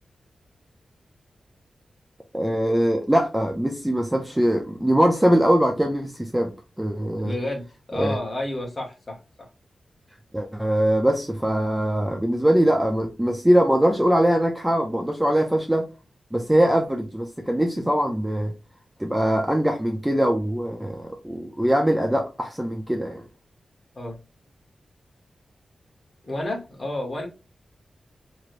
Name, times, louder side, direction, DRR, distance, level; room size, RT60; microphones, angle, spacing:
voice 1, 2.3-6.5 6.8-7.3 8.0-8.2 10.3-15.9 16.3-18.5 19.0-23.2, equal, 5° right, 0.5 m, -22 dB
voice 2, 7.2-9.5 23.9-24.2 26.2-27.3, left 1 dB, 30° left, 1.1 m, -31 dB
3.0 x 3.0 x 2.5 m
wide cardioid pair, 140°, 0 cm